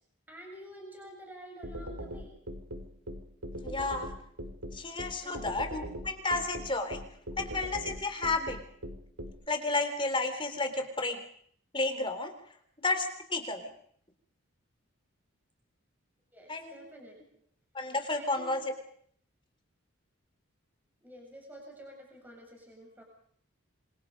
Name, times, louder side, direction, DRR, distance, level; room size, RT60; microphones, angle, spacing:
voice 1, 0.3-2.3 5.2-5.5 16.3-17.2 18.1-18.7 21.0-23.0, equal, 10° right, 0 dB, 7.9 m, -49 dB
sound 1, 1.6-9.3, equal, 85° right, 5.1 m, -40 dB
voice 2, 3.6-4.1 4.7-7.0 7.4-8.6 9.5-11.2 11.7-12.3 12.8-13.7 16.5-16.8 17.7-18.6, left 2 dB, 25° left, 6 dB, 3.6 m, -32 dB
27.0 x 27.0 x 5.3 m, 0.62 s
head